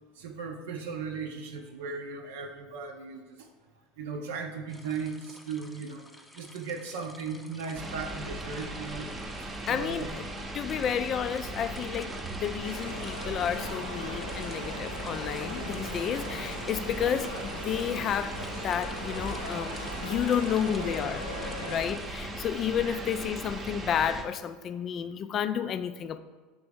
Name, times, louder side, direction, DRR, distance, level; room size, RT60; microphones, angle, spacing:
voice 1, 0.2-3.2 4.0-6.0 6.4-9.1 9.7-10.1 22.8-23.1, right 5 dB, 65° right, 0.5 m, -37 dB
sound 1, 4.7-22.3, left 1 dB, 5° left, 0.6 m, -51 dB
sound 2, 7.7-24.2, right 1 dB, 25° right, 0.8 m, -38 dB
voice 2, 9.7-10.3 10.5-21.3 21.7-26.2, left 8 dB, 40° left, 0.3 m, -31 dB
sound 3, 12.6-21.8, left 1 dB, 85° left, 1.0 m, -40 dB
5.9 x 3.4 x 5.2 m
figure-of-eight pair, 75°, 0 cm